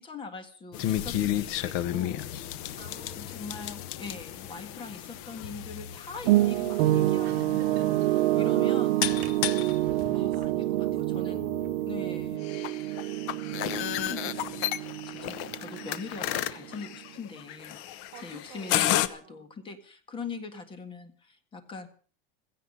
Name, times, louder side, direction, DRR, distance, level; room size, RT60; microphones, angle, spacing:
voice 1, 0.0-7.9 8.3-9.0 10.1-11.5 11.9-12.5 14.0-14.6 14.9-21.9, left 4 dB, 15° left, 10 dB, 1.7 m, -43 dB
sound 1, 0.7-19.1, left 12 dB, 45° left, 1.0 m, -33 dB
voice 2, 2.7-3.7 7.2-8.2 10.1-10.5 10.8-11.6 12.8-14.1 14.6-14.9 18.1-19.5, right 9 dB, 35° right, 1 dB, 4.4 m, -50 dB
sound 2, 6.2-16.3 16.6-16.9, right 16 dB, 75° right, 0.9 m, -27 dB
16.5 x 15.0 x 5.5 m, 0.41 s
cardioid pair, 175°, 30 cm